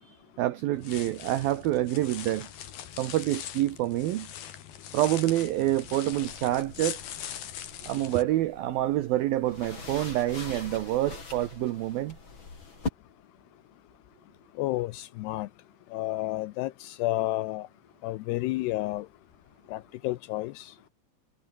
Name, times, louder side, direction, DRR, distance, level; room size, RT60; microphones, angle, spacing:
voice 1, 0.0-2.5 3.0-4.3 4.9-7.0 7.8-12.2, right 14 dB, 75° right, 2.2 m, -27 dB
sound 1, 0.7-8.2, left 10 dB, 55° left, 3.7 m, -41 dB
sound 2, 6.1-12.9, left 3 dB, 25° left, 4.8 m, -42 dB
voice 2, 14.6-15.5 15.9-17.7 18.0-19.1 19.7-20.7, left 17 dB, 85° left, 2.4 m, -31 dB
omnidirectional pair, 5.5 m